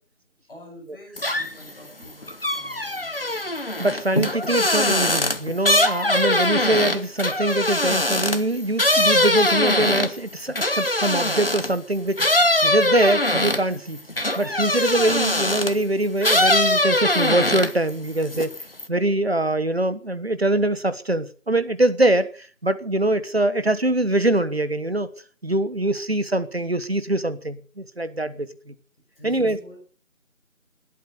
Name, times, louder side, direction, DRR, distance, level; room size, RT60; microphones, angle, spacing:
voice 1, 0.5-3.5 29.1-29.8, equal, ahead, 2.8 m, -46 dB
sound 1, 1.2-1.7 2.0-11.8 12.2-15.8 16.2-17.9 18.2-18.9, left 1 dB, 45° left, 1.1 m, -22 dB
voice 2, 3.8-12.2 12.6-14.0 14.4-18.6 18.9-25.1 25.4-28.5 29.2-29.6, right 1 dB, 45° right, 1.3 m, -23 dB
18.5 x 8.8 x 6.6 m
figure-of-eight pair, 175°, 41 cm